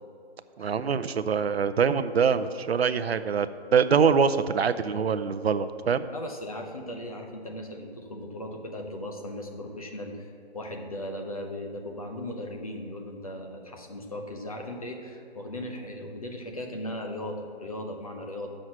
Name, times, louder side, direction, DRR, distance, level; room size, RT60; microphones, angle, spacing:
voice 1, 0.6-6.1, right 6 dB, 70° right, 12 dB, 0.6 m, -24 dB
voice 2, 6.1-18.5, left 1 dB, 35° left, 3 dB, 0.8 m, -37 dB
7.9 x 6.3 x 7.2 m, 2.5 s
hypercardioid pair, 180°, 32 cm